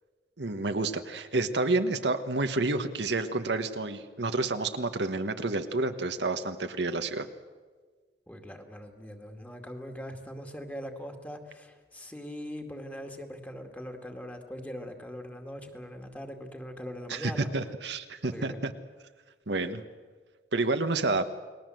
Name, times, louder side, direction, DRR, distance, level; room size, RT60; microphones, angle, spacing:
voice 1, 0.4-7.3 17.1-18.7 19.5-19.8 20.5-21.3, right 2 dB, 70° right, 8 dB, 1.3 m, -29 dB
voice 2, 8.3-17.7 18.3-18.6, equal, 10° left, 4 dB, 2.2 m, -41 dB
29.5 x 20.0 x 7.8 m, 1.4 s
head